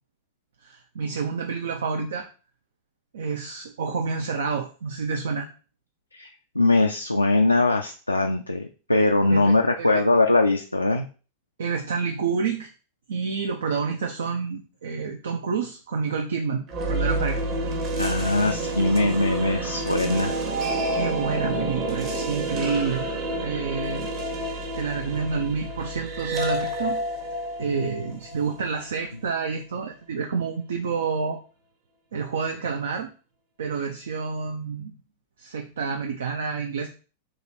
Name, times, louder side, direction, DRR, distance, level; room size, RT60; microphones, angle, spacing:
voice 1, 0.6-2.3 3.1-5.5 9.3-10.0 11.6-12.7 13.1-17.5 20.9-23.1 23.4-24.1 24.7-27.0 27.6-31.4 32.1-33.1 33.6-34.9 35.4-36.9, right 5 dB, 65° right, 4 dB, 0.5 m, -29 dB
voice 2, 6.6-11.1 18.0-20.3, left 2 dB, 85° left, 3 dB, 0.3 m, -21 dB
sound 1, 16.7-28.8, right 1 dB, 35° right, 1.1 m, -29 dB
3.8 x 2.9 x 4.5 m, 0.36 s
figure-of-eight pair, 90°, 0 cm